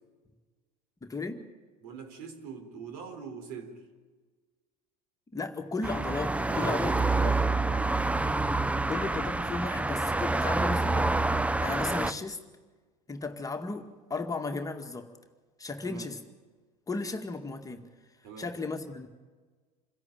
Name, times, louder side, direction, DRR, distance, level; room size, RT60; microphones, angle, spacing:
voice 1, 1.0-1.4 5.3-7.0 7.2-7.5 8.9-12.5 13.1-15.1 15.6-16.2 16.9-17.9 18.4-19.1, left 3 dB, 15° left, 2.1 m, -35 dB
voice 2, 1.8-3.8 6.5-8.0 15.8-16.1 18.2-18.5, right 5 dB, 60° right, 4.4 m, -43 dB
sound 1, 5.8-12.1, right 2 dB, 5° right, 0.7 m, -27 dB
27.0 x 17.0 x 9.1 m
figure-of-eight pair, 75°, 21 cm